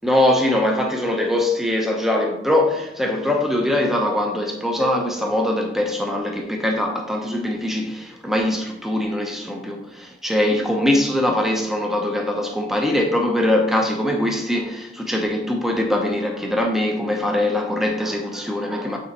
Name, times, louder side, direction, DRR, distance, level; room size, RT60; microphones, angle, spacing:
voice 1, 0.0-19.0, left 1 dB, ahead, 0.7 m, -22 dB
8.4 x 4.3 x 4.0 m
head